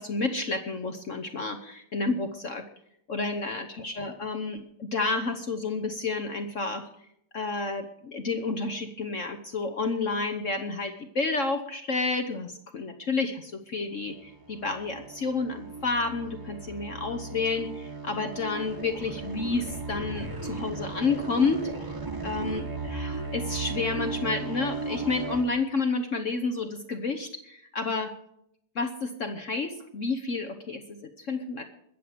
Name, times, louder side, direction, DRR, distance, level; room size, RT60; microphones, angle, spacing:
voice 1, 0.0-2.6 3.1-6.9 7.3-22.0 22.2-28.1 28.7-31.6, left 3 dB, 50° left, 6 dB, 0.9 m, -30 dB
sound 1, 14.1-25.5, right 3 dB, 15° right, 0.8 m, -36 dB
21.5 x 7.7 x 5.1 m, 0.75 s
omnidirectional pair, 2.3 m